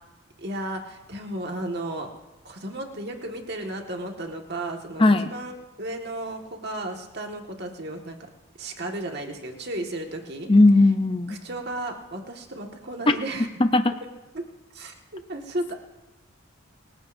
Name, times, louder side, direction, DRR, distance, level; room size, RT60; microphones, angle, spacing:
voice 1, 0.4-2.1 2.5-8.2 8.6-10.5 11.3-13.5 14.3-14.4 14.7-15.8, right 1 dB, 50° right, 2 dB, 1.8 m, -34 dB
voice 2, 5.0-5.3 10.5-11.4 13.1-13.2 13.6-13.9, left 2 dB, 25° left, 8 dB, 0.6 m, -17 dB
27.0 x 15.5 x 2.7 m, 1.1 s
head